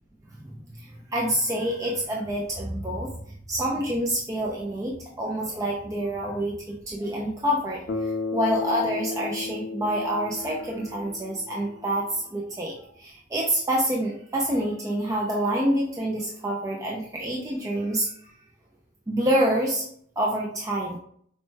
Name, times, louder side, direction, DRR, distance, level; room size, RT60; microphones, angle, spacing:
voice 1, 0.4-3.1 3.5-18.1 19.1-19.8 20.2-21.0, right 1 dB, 15° right, -2 dB, 0.4 m, -27 dB
Bass guitar, 7.9-12.1, left 4 dB, 55° left, 0.4 m, -34 dB
4.2 x 2.2 x 3.1 m, 0.64 s
head